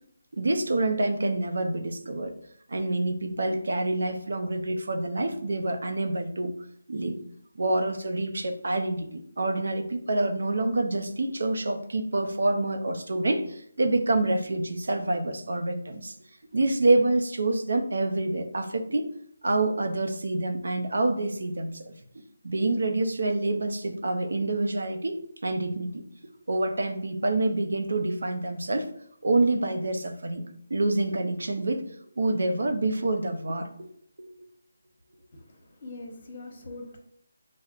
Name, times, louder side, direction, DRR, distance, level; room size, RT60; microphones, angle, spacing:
voice 1, 0.3-2.3 2.7-6.5 6.9-7.2 7.5-16.1 16.5-19.1 19.4-21.8 22.4-26.0 26.5-28.9 29.2-30.4 30.7-31.8 32.2-33.7, right 2 dB, 70° right, 5 dB, 0.5 m, -27 dB
voice 2, 35.3-37.0, left 2 dB, 45° left, 1 dB, 1.0 m, -42 dB
5.8 x 2.1 x 2.4 m, 0.67 s
figure-of-eight pair, 160°, 0 cm